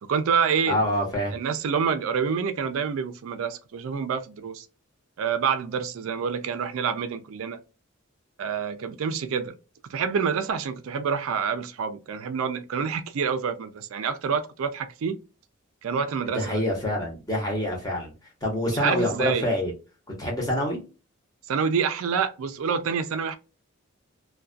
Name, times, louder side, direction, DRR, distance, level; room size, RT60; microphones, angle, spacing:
voice 1, 0.1-0.8 1.3-4.7 5.2-7.6 8.4-9.5 9.9-15.2 15.8-16.6 18.8-19.5 21.5-23.4, right 6 dB, 70° right, 0.3 m, -27 dB
voice 2, 0.7-1.4 16.3-18.1 18.4-19.7 20.1-20.8, left 1 dB, 15° left, 0.9 m, -26 dB
2.3 x 2.2 x 2.4 m
head